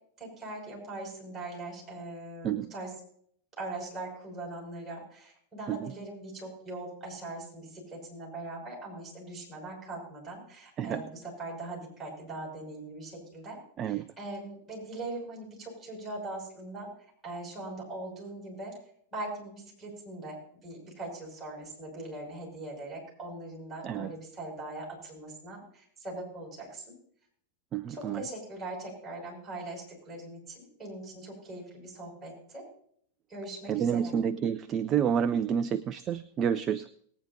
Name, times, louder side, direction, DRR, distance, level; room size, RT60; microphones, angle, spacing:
voice 1, 0.2-3.0 3.6-13.6 13.9-16.9 17.2-18.7 19.1-20.4 20.6-26.9 27.9-32.6 33.3-34.2, right 2 dB, 15° right, -4 dB, 6.3 m, -41 dB
voice 2, 27.7-28.2 33.7-36.8, right 8 dB, 30° right, 13 dB, 0.5 m, -29 dB
19.5 x 9.5 x 2.8 m, 0.63 s
figure-of-eight pair, 90°, 0 cm